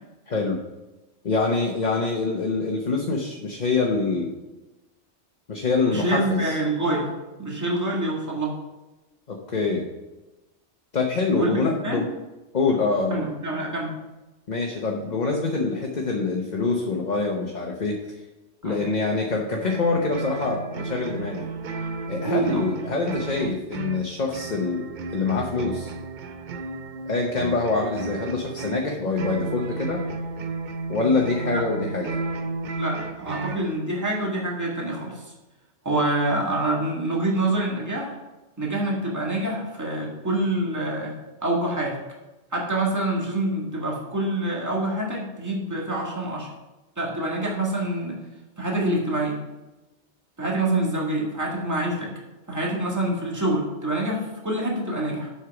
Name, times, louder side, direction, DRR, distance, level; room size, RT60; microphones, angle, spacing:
voice 1, 0.3-0.6 1.2-4.3 5.5-6.5 9.3-9.9 10.9-12.1 12.5-13.2 14.5-18.0 18.6-21.5 22.1-25.9 27.1-30.0 30.9-32.2, left 3 dB, 40° left, 1 dB, 1.0 m, -25 dB
voice 2, 5.9-7.1 7.4-8.6 11.3-12.0 13.1-13.9 18.6-18.8 22.2-22.7 31.5-31.6 32.8-35.3 35.8-38.1 38.6-42.0 42.5-46.5 47.0-48.2 48.6-49.4 50.4-52.1 52.5-55.3, right 1 dB, 15° right, -3 dB, 1.8 m, -26 dB
sound 1, 19.6-33.7, right 3 dB, 50° right, 0.6 m, -33 dB
8.0 x 5.8 x 6.0 m, 1.1 s
omnidirectional pair, 1.2 m